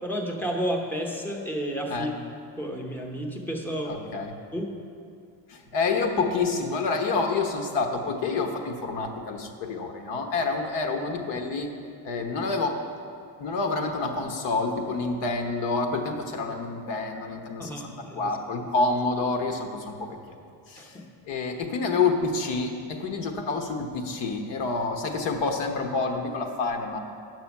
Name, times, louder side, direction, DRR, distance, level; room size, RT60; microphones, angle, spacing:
voice 1, 0.0-2.1 2.6-4.0 4.5-4.7 17.6-18.4 20.8-21.1, equal, 5° left, 1 dB, 0.7 m, -31 dB
voice 2, 3.8-4.4 5.5-11.7 12.0-12.8 13.4-20.4 20.7-21.0 21.3-27.0, left 3 dB, 70° left, 4 dB, 1.2 m, -28 dB
9.6 x 6.1 x 7.1 m, 2.4 s
cardioid pair, 175°, 44 cm